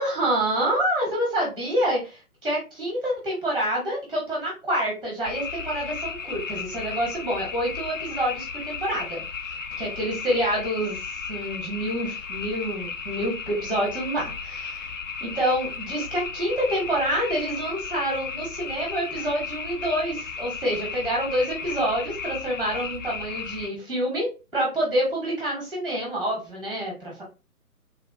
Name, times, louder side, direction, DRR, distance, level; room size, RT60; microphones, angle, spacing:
voice 1, 0.0-9.2 9.8-11.0 11.3-14.9 15.2-24.3 24.5-27.2, right 1 dB, ahead, -3 dB, 0.8 m, -27 dB
sound 1, 5.2-23.7, left 5 dB, 55° left, 0.6 m, -34 dB
3.5 x 2.3 x 2.3 m, 0.29 s
figure-of-eight pair, 140°, 45 cm